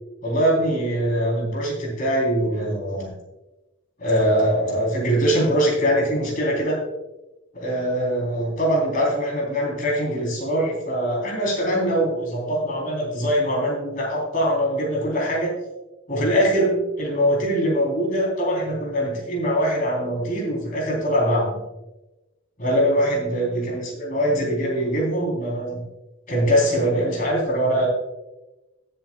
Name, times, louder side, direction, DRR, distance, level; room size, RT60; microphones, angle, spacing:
voice 1, 0.2-3.1 4.0-6.8 7.5-15.5 16.1-21.6 22.6-25.8 26.3-27.9, equal, 40° left, -2 dB, 3.6 m, -22 dB
20.0 x 7.8 x 2.3 m, 1.0 s
head